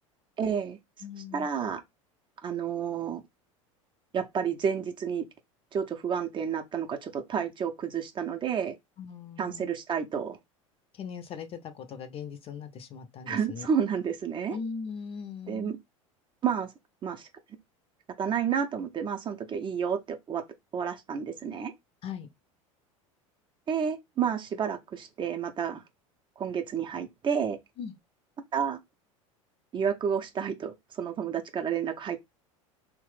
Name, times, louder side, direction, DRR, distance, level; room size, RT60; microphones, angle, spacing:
voice 1, 0.4-0.8 1.3-1.8 2.4-3.2 4.1-5.2 5.7-8.7 9.4-10.4 13.3-14.6 15.5-15.8 16.4-16.7 17.0-17.3 18.2-20.4 20.7-21.7 23.7-25.8 26.4-27.6 28.5-28.8 29.7-32.2, right 7 dB, 30° right, 0.6 m, -30 dB
voice 2, 1.0-1.5 9.0-9.7 10.9-13.7 14.5-15.7 22.0-22.3 27.8-27.9, left 6 dB, 35° left, 0.6 m, -39 dB
3.0 x 2.1 x 3.1 m
hypercardioid pair, 80°, 17 cm